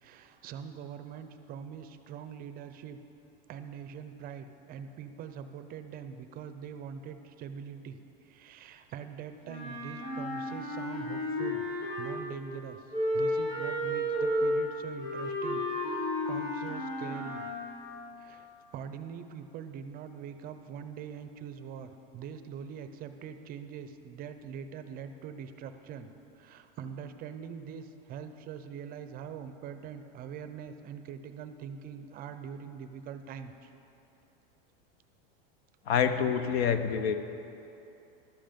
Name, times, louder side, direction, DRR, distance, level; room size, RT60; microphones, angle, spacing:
voice 1, 0.0-3.0 3.5-8.0 8.2-11.6 12.0-12.8 13.1-17.5 18.2-26.1 26.4-33.7, right 7 dB, 30° right, 9 dB, 0.5 m, -43 dB
Wind instrument woodwind instrument, 9.4-12.4 12.9-17.8, left 1 dB, 25° left, 2.7 m, -32 dB
voice 2, 35.9-37.1, left 7 dB, 90° left, 10 dB, 0.8 m, -27 dB
12.0 x 7.6 x 5.1 m, 2.9 s
supercardioid pair, 135°, 30 cm